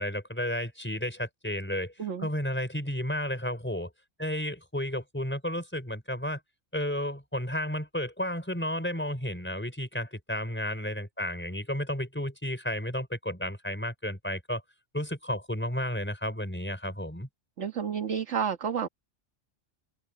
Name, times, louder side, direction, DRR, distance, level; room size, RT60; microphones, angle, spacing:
voice 1, 0.0-1.9 2.2-3.9 4.2-6.4 6.7-14.6 14.9-17.3, left 1 dB, 10° left, 4.6 m, -32 dB
voice 2, 17.6-18.9, right 7 dB, 70° right, 1.8 m, -30 dB
open air
omnidirectional pair, 1.3 m